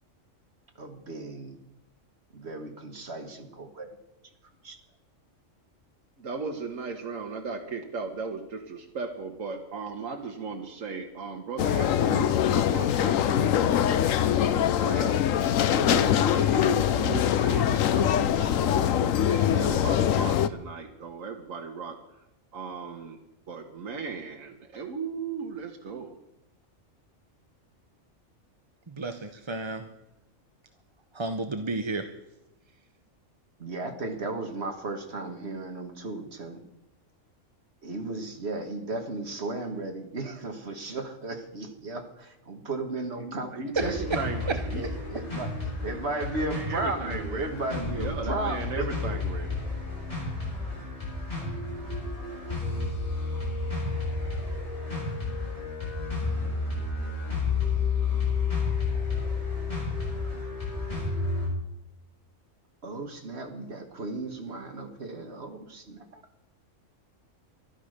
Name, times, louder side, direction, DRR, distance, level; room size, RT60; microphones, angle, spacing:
voice 1, 0.8-1.6 2.3-3.9 4.6-4.8 33.6-36.6 37.8-44.0 44.8-45.5 45.8-49.2 62.8-66.2, right 2 dB, 55° right, 5 dB, 2.0 m, -35 dB
voice 2, 6.2-13.8 14.5-22.0 22.5-23.2 23.5-26.1 43.2-44.8 46.2-47.5 47.9-49.6, right 4 dB, 85° right, 3 dB, 1.7 m, -36 dB
sound 1, 11.6-20.5, left 10 dB, 80° left, 1.1 m, -23 dB
voice 3, 28.9-29.8 31.1-32.1 43.8-44.2 44.5-44.6, right 3 dB, 25° right, 8 dB, 0.7 m, -31 dB
sound 2, 43.7-61.5, left 4 dB, 25° left, 7.5 m, -31 dB
14.0 x 12.0 x 6.6 m, 0.89 s
omnidirectional pair, 1.4 m